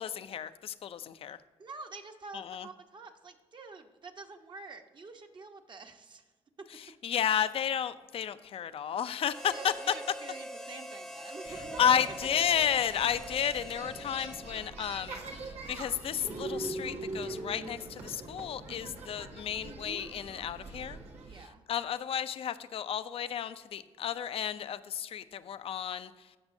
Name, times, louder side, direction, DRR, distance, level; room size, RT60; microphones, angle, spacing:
voice 1, 0.0-1.4 2.3-2.7 6.8-9.7 11.8-21.0 21.4-26.3, left 9 dB, 60° left, 13 dB, 0.5 m, -32 dB
voice 2, 1.6-6.2 6.6-6.7 9.5-11.8 21.2-21.6, right 4 dB, 45° right, 5 dB, 1.1 m, -47 dB
Harmonica, 9.3-15.1, equal, 5° left, 0.6 m, -44 dB
sound 1, 11.4-21.4, right 2 dB, 80° right, 1.6 m, -42 dB
16.0 x 6.1 x 2.7 m, 1.3 s
cardioid pair, 90°, 11 cm